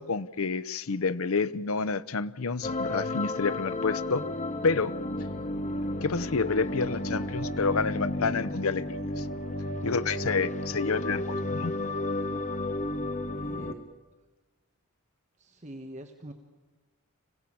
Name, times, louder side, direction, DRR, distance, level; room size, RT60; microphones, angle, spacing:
voice 1, 0.0-4.2 4.6-4.9 6.0-9.3 9.8-11.7, left 4 dB, 75° left, 15 dB, 0.7 m, -29 dB
sound 1, 2.6-13.7, left 1 dB, 35° left, 1.2 m, -32 dB
voice 2, 13.3-13.8 15.4-16.3, right 1 dB, 30° right, 4 dB, 1.3 m, -44 dB
25.5 x 16.5 x 8.6 m, 1.2 s
head